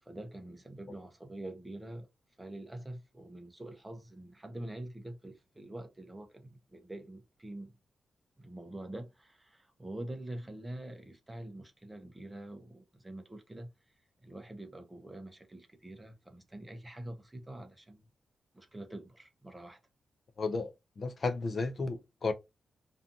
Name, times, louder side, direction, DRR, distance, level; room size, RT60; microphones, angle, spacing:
voice 1, 0.0-2.1 2.4-7.8 8.4-13.9 14.2-18.1 18.5-19.8, right 1 dB, 10° right, 0.5 m, -45 dB
voice 2, 20.4-22.3, left 3 dB, 40° left, 0.3 m, -33 dB
2.6 x 2.3 x 2.5 m
wide cardioid pair, 165°, 0 cm